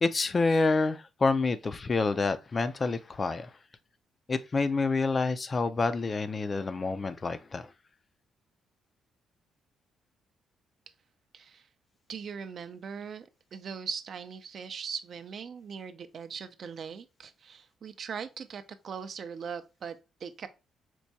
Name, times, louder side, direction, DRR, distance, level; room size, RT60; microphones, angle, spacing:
voice 1, 0.0-3.5 4.3-7.7, left 3 dB, 35° left, 0.3 m, -28 dB
voice 2, 11.3-11.7 12.1-20.5, right 6 dB, 55° right, 0.4 m, -40 dB
4.5 x 2.2 x 2.6 m
cardioid pair, 90°, 0 cm